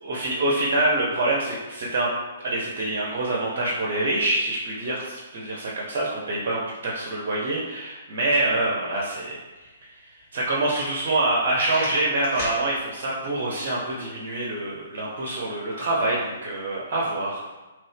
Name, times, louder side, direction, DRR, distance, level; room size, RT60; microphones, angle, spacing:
voice 1, 0.0-2.1 2.4-9.7 10.3-17.4, right 2 dB, 45° right, -4 dB, 0.6 m, -26 dB
sound 1, 9.6-9.7 10.2-10.3 10.6-11.3 11.5-12.6, equal, 45° left, 1.3 m, -34 dB
2.9 x 2.6 x 3.3 m, 1.2 s
figure-of-eight pair, 125°, 0 cm